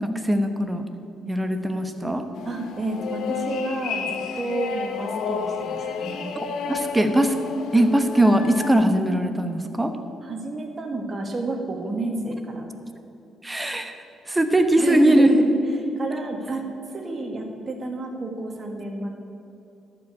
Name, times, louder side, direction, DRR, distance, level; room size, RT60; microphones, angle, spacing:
voice 1, 0.0-0.8 1.3-2.2 6.7-7.3 7.7-9.9 13.4-13.9 14.3-15.3, right 1 dB, 15° right, 7 dB, 1.0 m, -20 dB
sound 1, 2.3-8.7, left 6 dB, 75° left, 0.9 m, -31 dB
voice 2, 2.5-4.1 4.4-6.3 10.2-12.7 14.8-15.4 15.7-16.6 16.9-19.1, right 2 dB, 35° right, 2 dB, 1.8 m, -30 dB
12.0 x 5.4 x 8.2 m, 2.8 s
cardioid pair, 90°, 0 cm